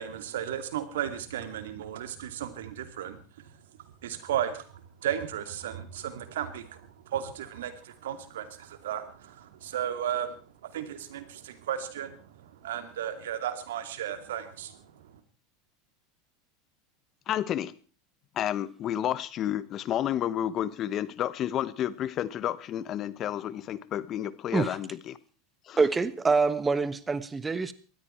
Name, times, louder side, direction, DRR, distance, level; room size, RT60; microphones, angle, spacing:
voice 1, 0.0-3.5 4.0-15.1, right 10 dB, 80° right, 10 dB, 2.4 m, -35 dB
voice 2, 17.3-17.7 18.3-25.2 25.7-25.8, left 11 dB, 40° left, 17 dB, 1.1 m, -31 dB
voice 3, 25.8-27.7, right 4 dB, 15° right, 15 dB, 1.3 m, -25 dB
19.0 x 13.5 x 4.5 m, 0.37 s
hypercardioid pair, 105°, 0 cm